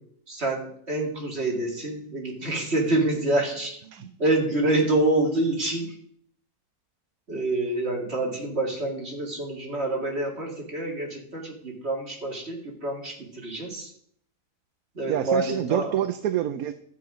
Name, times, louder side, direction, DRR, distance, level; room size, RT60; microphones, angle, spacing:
voice 1, 0.3-5.9 7.3-13.9 14.9-16.0, right 2 dB, 40° right, -1 dB, 2.7 m, -27 dB
voice 2, 15.1-16.7, right 11 dB, 70° right, 11 dB, 1.0 m, -27 dB
12.5 x 7.8 x 5.0 m, 0.66 s
omnidirectional pair, 1.7 m